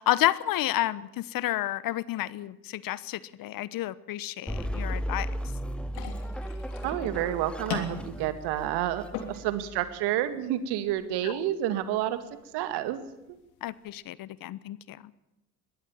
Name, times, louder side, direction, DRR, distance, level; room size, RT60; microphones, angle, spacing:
voice 1, 0.0-5.3 11.2-11.4 13.6-15.0, left 15 dB, 50° left, 19 dB, 1.1 m, -30 dB
sound 1, 4.5-9.9, equal, ahead, 2.0 m, -35 dB
sound 2, 5.9-13.9, left 5 dB, 70° left, 3.3 m, -42 dB
voice 2, 6.8-12.2 12.5-13.1, right 12 dB, 65° right, 11 dB, 2.2 m, -29 dB
21.0 x 17.0 x 7.2 m, 0.93 s
hypercardioid pair, 65°, 44 cm